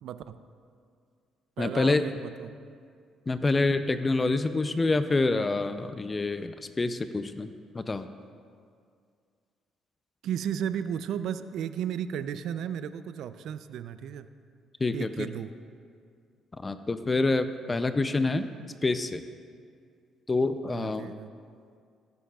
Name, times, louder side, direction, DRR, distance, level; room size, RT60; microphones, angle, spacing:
voice 1, 0.0-0.4 1.6-2.5 10.2-14.3 14.9-15.5 20.7-21.3, right 9 dB, 75° right, 12 dB, 0.3 m, -34 dB
voice 2, 1.6-2.0 3.3-7.5 7.7-8.1 14.8-15.3 16.6-18.5 18.8-19.2 20.3-21.1, left 3 dB, 25° left, 10 dB, 0.4 m, -27 dB
15.5 x 10.0 x 2.3 m, 2.2 s
cardioid pair, 80°, 0 cm